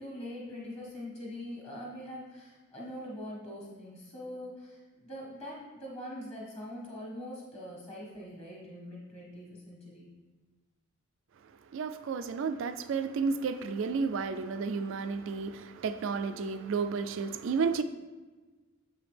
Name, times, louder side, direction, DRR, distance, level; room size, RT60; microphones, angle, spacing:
voice 1, 0.0-10.1, left 1 dB, 25° left, 1.5 m, -43 dB
voice 2, 11.7-17.8, right 5 dB, 60° right, 0.3 m, -32 dB
7.2 x 5.0 x 3.3 m
head